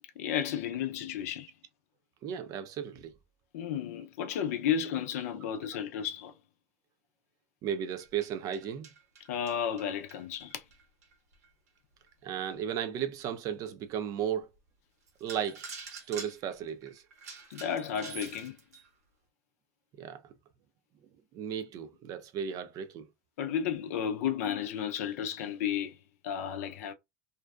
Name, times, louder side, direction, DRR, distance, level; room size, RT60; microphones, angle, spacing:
voice 1, 0.2-1.5 3.5-6.3 9.3-10.6 17.5-18.6 23.4-26.0 26.2-26.9, left 8 dB, 70° left, 0.5 m, -33 dB
voice 2, 2.2-3.1 7.6-8.9 12.2-14.5 15.2-17.0 20.0-20.2 21.3-23.1, right 8 dB, 45° right, 0.5 m, -35 dB
sound 1, 8.0-11.5 12.1-12.2 12.7-12.8 13.3-13.4 14.6-14.7 15.1-18.9, right 5 dB, 80° right, 1.0 m, -47 dB
2.5 x 2.1 x 2.3 m
hypercardioid pair, 95°, 8 cm